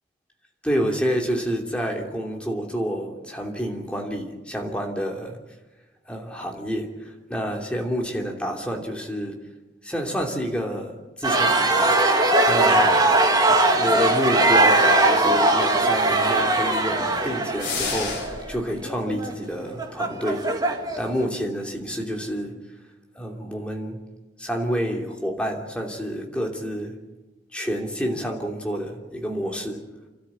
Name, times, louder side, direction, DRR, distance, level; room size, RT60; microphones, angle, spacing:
voice 1, 0.6-5.4 6.1-9.4 9.8-12.0 12.5-13.0 13.4-20.5 21.0-22.6 23.1-24.0 24.4-27.0 27.5-29.8, equal, 5° left, 1 dB, 2.9 m, -28 dB
sound 1, 11.2-21.2, right 2 dB, 20° right, 2.1 m, -20 dB
sound 2, 17.6-18.6, left 4 dB, 75° left, 4.4 m, -29 dB
30.0 x 13.0 x 8.6 m, 1.2 s
head